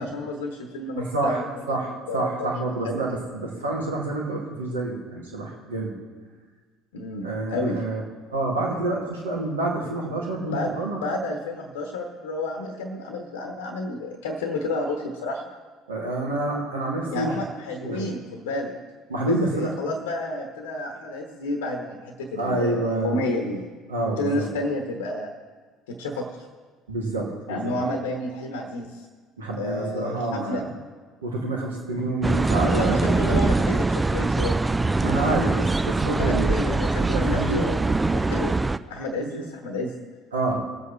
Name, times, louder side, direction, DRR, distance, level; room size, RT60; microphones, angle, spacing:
voice 1, 0.0-1.5 2.1-2.5 2.8-3.0 6.9-7.8 10.5-10.7 11.0-15.4 17.1-18.7 19.2-23.7 24.2-25.3 25.9-26.3 27.5-29.1 29.6-30.6 32.7-34.6 36.1-38.5 38.9-39.9, left 2 dB, 70° left, 3 dB, 1.1 m, -30 dB
voice 2, 1.0-5.9 7.2-8.0 8.3-11.0 15.9-17.4 17.8-18.1 19.1-19.8 22.4-23.2 23.9-24.5 26.9-27.7 29.4-30.7 31.2-33.0 35.0-36.5 37.1-37.7 39.1-39.3 40.3-40.6, right 2 dB, 80° right, -3 dB, 2.1 m, -28 dB
sound 1, 32.2-38.8, right 3 dB, 15° right, 0.4 m, -23 dB
22.5 x 8.1 x 3.2 m, 1.5 s
figure-of-eight pair, 55°, 0 cm